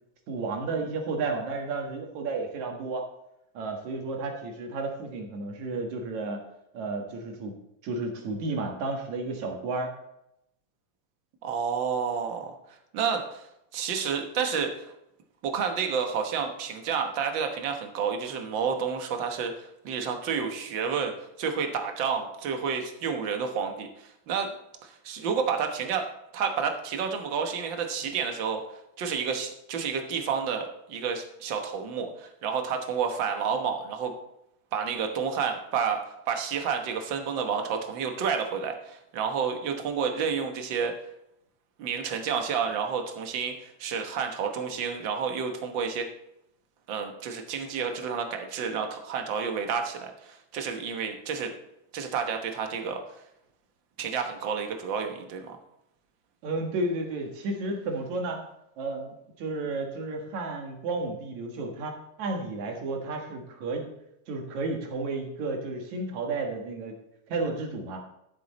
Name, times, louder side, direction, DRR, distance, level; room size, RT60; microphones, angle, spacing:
voice 1, 0.3-3.0 3.5-6.4 6.7-7.5 7.8-9.9 56.4-58.4 58.8-61.9 62.2-63.9 64.3-67.0 67.3-68.0, right 3 dB, 75° right, 2 dB, 3.0 m, -32 dB
voice 2, 11.4-12.6 12.9-14.9 15.4-24.5 24.8-26.1 26.3-28.6 29.0-34.1 34.7-41.0 41.8-46.1 46.9-51.5 51.9-53.0 54.0-55.6, right 6 dB, 55° right, 5 dB, 1.5 m, -30 dB
12.5 x 7.7 x 4.2 m, 0.81 s
omnidirectional pair, 3.4 m